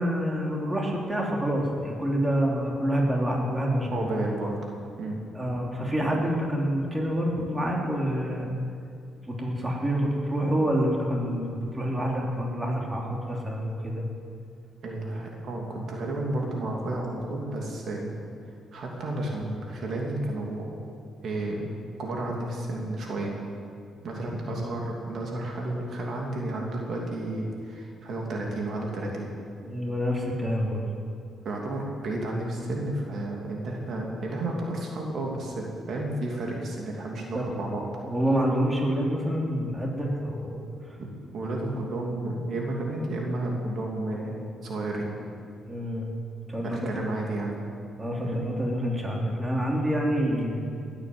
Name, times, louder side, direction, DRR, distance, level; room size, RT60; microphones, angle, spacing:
voice 1, 0.0-4.1 5.3-8.5 9.3-14.0 29.6-30.8 37.3-37.5 37.8-40.6 40.9-41.0 45.6-46.1 46.5-47.1 48.0-50.6, equal, 15° right, -2 dB, 3.0 m, -27 dB
voice 2, 3.9-4.6 5.0-5.2 14.8-18.1 18.7-20.7 21.2-21.7 22.0-23.3 24.0-29.3 31.4-37.8 41.0-41.1 41.3-44.4 44.6-45.1 46.6-47.6 48.2-48.4 50.0-50.2, right 2 dB, 60° right, -1 dB, 2.8 m, -32 dB
18.5 x 8.9 x 7.8 m, 2.4 s
cardioid pair, 90°, 0 cm